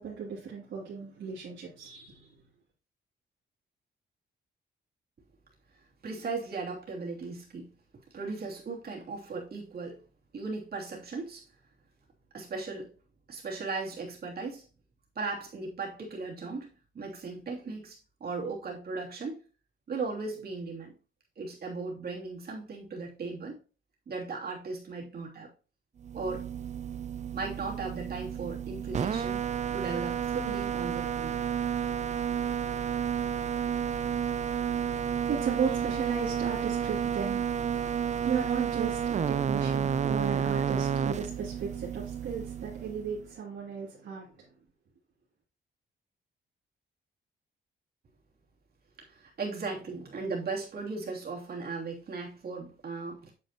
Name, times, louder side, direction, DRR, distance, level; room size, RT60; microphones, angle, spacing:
voice 1, 0.0-2.3 34.6-44.3, right 6 dB, 80° right, 2.7 m, -35 dB
voice 2, 6.0-7.7 8.1-10.0 10.3-11.4 12.3-12.9 13.3-14.6 15.1-16.7 16.9-19.4 19.9-20.9 21.4-23.6 24.1-25.5 26.1-26.5 27.3-29.4 29.7-31.4 49.0-53.3, right 4 dB, 55° right, 2.9 m, -37 dB
sound 1, 26.0-43.2, right 8 dB, 35° right, 0.5 m, -31 dB
8.8 x 7.6 x 3.0 m
cardioid pair, 110°, 20 cm